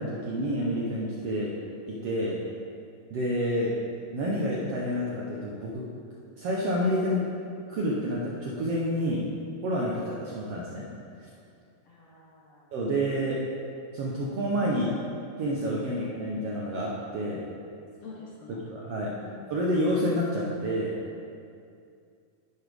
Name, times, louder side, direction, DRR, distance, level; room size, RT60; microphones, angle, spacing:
voice 1, 0.0-1.5 1.9-2.4 3.1-3.7 4.1-5.8 6.4-7.2 7.7-9.2 9.6-10.8 11.2-11.3 12.7-13.4 13.9-14.9 15.4-17.4 18.6-19.1 19.5-20.9, equal, 70° right, -5 dB, 1.5 m, -28 dB
voice 2, 11.8-12.7 18.0-18.6 19.1-19.5, left 4 dB, 65° left, -4 dB, 1.7 m, -47 dB
11.0 x 8.1 x 3.4 m, 2.4 s
omnidirectional pair, 3.9 m